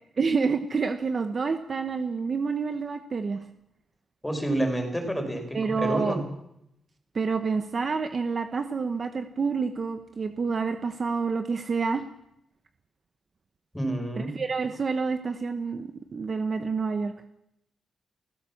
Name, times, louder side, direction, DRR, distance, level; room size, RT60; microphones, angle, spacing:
voice 1, 0.2-3.4 5.5-6.2 7.1-12.0 14.2-17.1, right 5 dB, 35° right, 8 dB, 1.1 m, -28 dB
voice 2, 4.2-6.2 13.7-14.3, right 1 dB, 5° left, 4 dB, 4.9 m, -29 dB
29.0 x 15.5 x 7.2 m, 0.81 s
wide cardioid pair, 140°, 0 cm